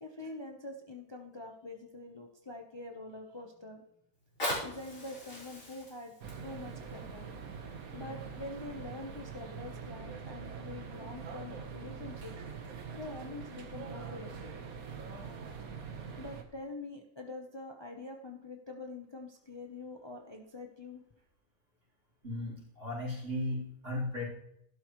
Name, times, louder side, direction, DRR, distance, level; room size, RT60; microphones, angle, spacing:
voice 1, 0.0-3.8 4.6-6.1 6.4-7.3 7.9-12.4 12.9-14.6 16.2-21.0, left 2 dB, 20° left, 2 dB, 0.9 m, -45 dB
Fire, 4.1-9.1 9.7-9.8, left 1 dB, 65° left, 4.7 m, -41 dB
sound 1, 6.2-16.4, right 6 dB, 80° right, 1.6 m, -44 dB
voice 2, 22.2-24.2, left 1 dB, 55° right, -5 dB, 4.1 m, -36 dB
12.0 x 12.0 x 3.1 m, 0.75 s
omnidirectional pair, 1.5 m